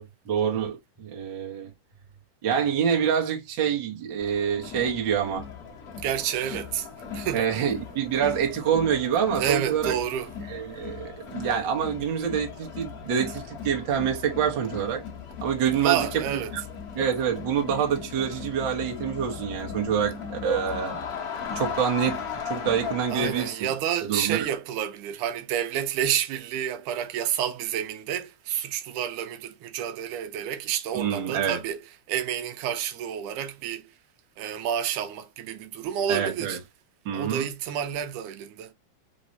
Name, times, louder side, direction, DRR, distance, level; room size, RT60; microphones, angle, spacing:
voice 1, 0.0-1.7 2.4-5.5 7.3-9.9 10.5-15.0 15.4-16.1 16.5-16.6 16.9-21.0 21.5-23.7 24.1-24.5 30.9-31.6 36.1-36.6 37.0-37.5, right 8 dB, 50° right, 1.5 m, -26 dB
Crowd, 4.2-23.6, left 6 dB, 70° left, 0.8 m, -38 dB
voice 2, 6.0-6.9 7.1-7.6 9.4-10.3 15.7-16.5 23.1-31.8 32.1-33.9 34.4-36.6 37.1-38.7, right 9 dB, 80° right, 2.2 m, -29 dB
4.4 x 3.9 x 2.6 m
omnidirectional pair, 3.6 m